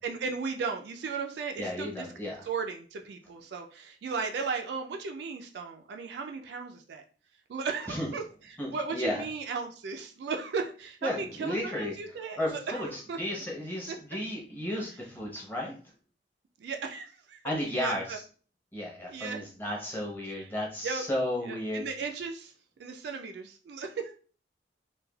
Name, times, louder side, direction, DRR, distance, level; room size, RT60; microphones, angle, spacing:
voice 1, 0.0-2.1 2.5-7.0 7.5-13.2 13.9-14.0 16.6-17.4 17.7-18.2 19.1-19.4 20.3-20.5 20.8-21.0 21.4-22.5 22.8-24.1, right 5 dB, 65° right, 4 dB, 0.3 m, -36 dB
voice 2, 1.6-2.4 7.9-8.1 8.6-9.2 11.0-15.8 17.4-18.2 18.7-21.8, left 1 dB, 10° left, -3 dB, 0.7 m, -34 dB
3.1 x 2.2 x 2.2 m, 0.40 s
head